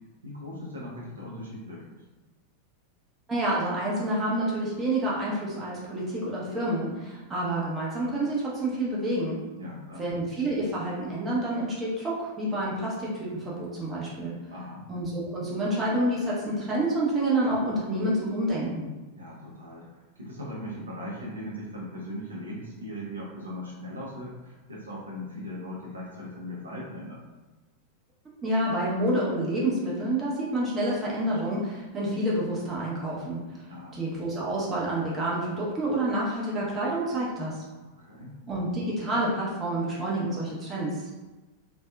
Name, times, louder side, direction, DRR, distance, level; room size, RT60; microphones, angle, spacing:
voice 1, 0.2-2.0 9.6-10.1 14.5-14.9 19.1-27.2 33.7-34.0 37.8-38.3, left 1 dB, 75° right, -5 dB, 0.6 m, -39 dB
voice 2, 3.3-9.4 10.0-14.4 14.9-18.9 28.4-33.4 33.9-37.6 38.5-41.2, right 1 dB, 20° right, -5 dB, 0.8 m, -28 dB
2.6 x 2.2 x 2.2 m, 1.2 s
figure-of-eight pair, 90°, 0 cm